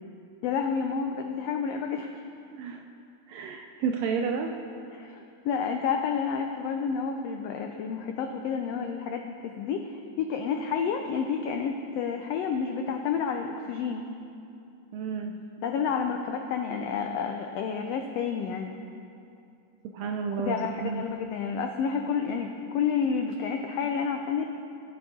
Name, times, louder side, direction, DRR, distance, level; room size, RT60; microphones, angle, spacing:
voice 1, 0.4-2.2 4.9-14.0 15.6-18.7 20.4-24.6, left 6 dB, 90° left, 4 dB, 1.4 m, -30 dB
voice 2, 2.5-2.8 3.3-4.5 14.9-15.3 19.9-21.1, right 6 dB, 80° right, 3 dB, 1.5 m, -31 dB
17.5 x 8.2 x 3.7 m, 2.6 s
omnidirectional pair, 3.5 m